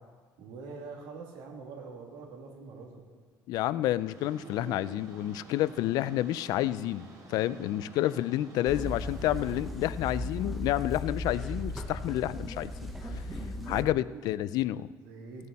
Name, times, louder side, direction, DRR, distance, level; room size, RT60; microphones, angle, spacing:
voice 1, 0.4-3.0 7.5-7.8 13.1-14.5 15.0-15.5, right 4 dB, 80° right, 0 dB, 2.5 m, -45 dB
voice 2, 3.5-13.2 13.7-14.9, left 14 dB, 55° left, 16 dB, 0.4 m, -30 dB
sound 1, 4.1-9.6, right 2 dB, 50° right, 2.6 m, -49 dB
sound 2, 8.7-13.8, left 1 dB, ahead, 0.9 m, -36 dB
17.0 x 9.5 x 4.2 m, 1.5 s
cardioid pair, 175°, 8 cm